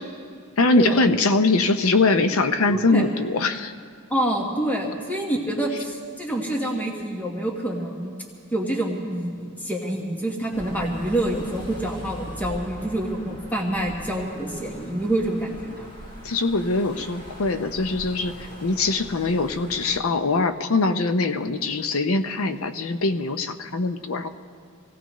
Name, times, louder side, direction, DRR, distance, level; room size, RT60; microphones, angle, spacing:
voice 1, 0.6-3.7 16.2-24.4, left 3 dB, 65° left, 9 dB, 0.7 m, -22 dB
voice 2, 2.7-3.0 4.1-8.1 8.5-15.9, right 1 dB, 10° left, -1 dB, 1.3 m, -27 dB
sound 1, 10.5-20.0, equal, 40° left, 4.6 m, -41 dB
25.5 x 17.0 x 3.1 m, 2.2 s
head